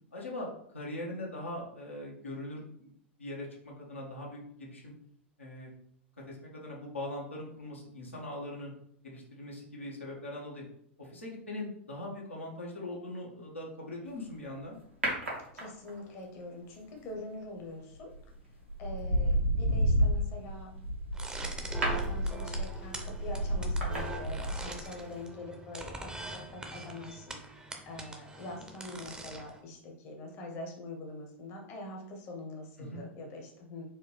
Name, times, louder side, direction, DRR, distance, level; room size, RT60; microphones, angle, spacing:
voice 1, 0.1-2.9 3.2-4.9 5.4-5.7 6.3-8.7 9.0-10.6 11.0-14.8 32.8-33.1, left 1 dB, 85° left, -3 dB, 1.1 m, -41 dB
sound 1, 15.0-16.1 17.9-18.2 18.7-24.9 25.2-25.3, equal, 90° right, 1.4 m, -30 dB
voice 2, 15.5-18.1 18.8-20.7 21.9-33.8, left 2 dB, 40° left, 1 dB, 0.9 m, -44 dB
sound 2, 21.1-29.6, right 2 dB, 10° right, 0.7 m, -43 dB
4.4 x 2.5 x 3.4 m, 0.68 s
figure-of-eight pair, 90°, 7 cm